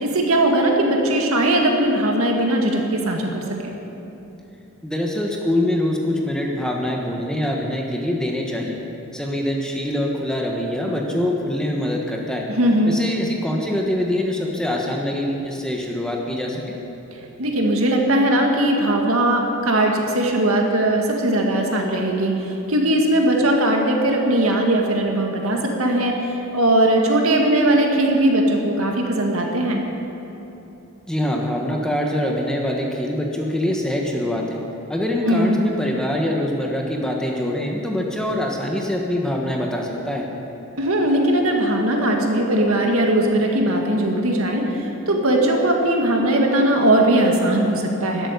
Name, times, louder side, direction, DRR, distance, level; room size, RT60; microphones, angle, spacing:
voice 1, 0.0-3.7 12.5-13.0 17.4-26.2 26.5-29.8 35.2-35.6 40.8-48.3, right 1 dB, 70° right, 1 dB, 2.0 m, -19 dB
voice 2, 4.8-8.8 9.1-12.5 12.9-16.7 31.1-34.6 34.9-40.3, left 1 dB, 5° left, -1 dB, 1.2 m, -24 dB
13.5 x 8.8 x 9.8 m, 3.0 s
head